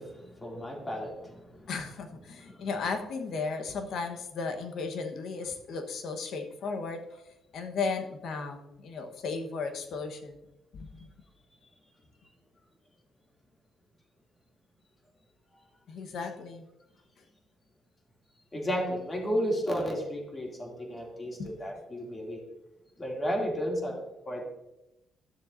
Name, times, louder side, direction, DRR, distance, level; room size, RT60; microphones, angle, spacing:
voice 1, 0.0-1.7 2.5-2.7 18.5-22.4 23.0-24.0 24.3-24.5, equal, 25° left, -1 dB, 2.7 m, -33 dB
voice 2, 1.7-7.2 7.5-10.4 10.7-11.1 15.9-16.6 21.4-21.5, left 4 dB, 70° left, 5 dB, 1.2 m, -35 dB
13.0 x 7.0 x 2.7 m, 0.90 s
cardioid pair, 90°, 0 cm